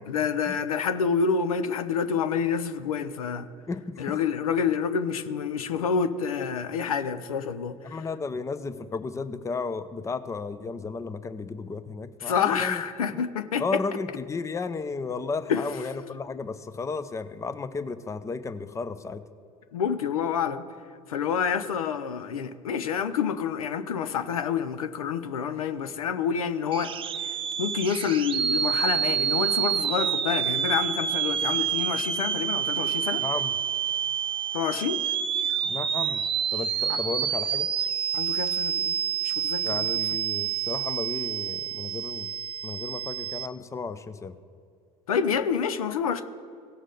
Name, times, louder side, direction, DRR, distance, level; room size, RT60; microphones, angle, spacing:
voice 1, 0.1-3.5 4.0-7.9 12.2-13.8 15.5-15.6 19.7-20.7 21.1-26.9 27.2-33.2 34.5-35.0 36.9-37.0 38.1-38.9 39.2-39.9 45.1-46.2, left 6 dB, 80° left, 0.6 m, -28 dB
voice 2, 3.7-4.2 7.8-12.8 13.1-13.2 13.6-19.2 33.2-33.5 35.6-36.2 36.5-37.7 39.6-42.3 42.6-44.4, left 4 dB, 15° left, 0.6 m, -33 dB
sound 1, 26.7-43.5, right 8 dB, 30° right, 0.6 m, -28 dB
17.0 x 6.3 x 3.9 m
figure-of-eight pair, 70°, 18 cm